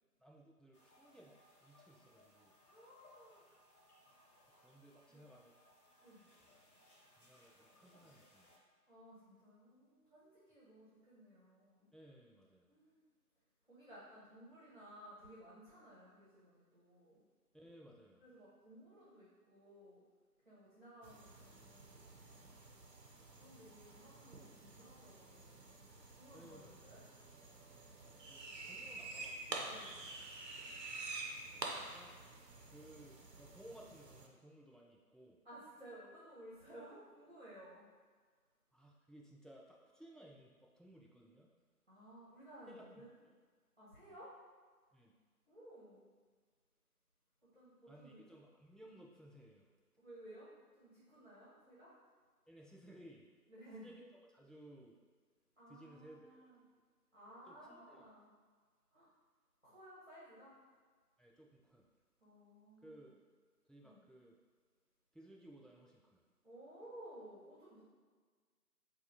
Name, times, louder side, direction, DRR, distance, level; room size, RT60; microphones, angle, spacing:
voice 1, 0.2-2.6 4.5-5.5 7.2-8.5 11.9-12.7 17.5-18.2 26.3-26.7 28.3-29.7 31.4-32.2 32.7-35.4 38.7-41.5 42.7-43.3 44.1-44.2 44.9-45.1 47.9-49.7 52.5-53.3 53.8-54.0 54.3-55.0 55.7-56.8 57.5-58.0 61.2-61.9 62.8-63.1 63.7-64.3 65.1-66.2, right 1 dB, ahead, -2 dB, 0.3 m, -59 dB
sound 1, 0.7-8.6, left 1 dB, 65° left, 1.0 m, -67 dB
voice 2, 2.6-3.5 4.1-4.8 5.1-5.2 6.0-6.2 8.9-11.9 12.7-13.0 13.6-17.2 18.2-20.0 20.4-22.6 23.4-25.8 26.1-27.0 29.6-30.1 35.4-37.8 41.9-43.1 43.8-44.3 45.5-46.0 47.4-48.4 50.0-50.5 50.7-51.9 53.5-53.9 55.6-56.6 57.1-58.3 58.9-59.1 59.6-60.5 62.2-63.1 63.8-64.0 66.4-67.8, right 1 dB, 40° right, -10 dB, 1.1 m, -57 dB
sound 2, 21.0-34.3, right 3 dB, 90° right, 0.8 m, -49 dB
5.2 x 2.3 x 2.8 m, 1.5 s
figure-of-eight pair, 175°, 48 cm